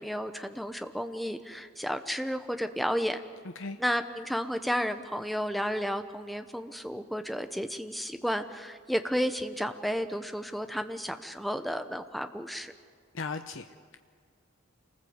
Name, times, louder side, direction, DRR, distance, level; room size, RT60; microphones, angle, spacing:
voice 1, 0.0-3.2 3.8-12.7, equal, ahead, 7 dB, 1.0 m, -32 dB
voice 2, 13.1-14.0, left 4 dB, 65° left, 7 dB, 0.8 m, -37 dB
27.5 x 19.5 x 8.0 m, 2.1 s
head